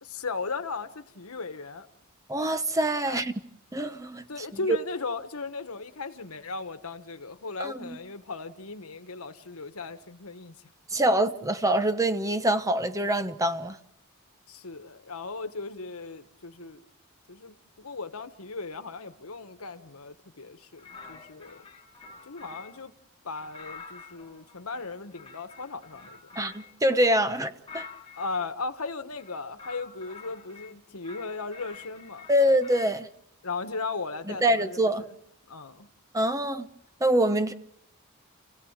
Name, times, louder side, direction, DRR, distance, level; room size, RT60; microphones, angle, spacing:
voice 1, 0.0-1.9 3.0-3.2 4.3-10.6 10.9-11.0 14.5-16.8 17.3-21.6 22.3-22.9 23.2-26.2 28.2-32.2 33.4-34.8 35.5-35.9, left 4 dB, 85° left, 1.4 m, -37 dB
voice 2, 2.3-3.3 3.7-4.5 7.6-8.0 10.9-13.8 26.4-27.8 32.3-33.1 34.3-35.0 36.1-36.7 37.0-37.5, right 1 dB, 15° right, 1.0 m, -25 dB
sound 1, 20.8-22.9 23.4-28.5 29.1-30.7 31.0-33.0, left 5 dB, 25° left, 1.9 m, -47 dB
29.0 x 16.0 x 7.3 m
head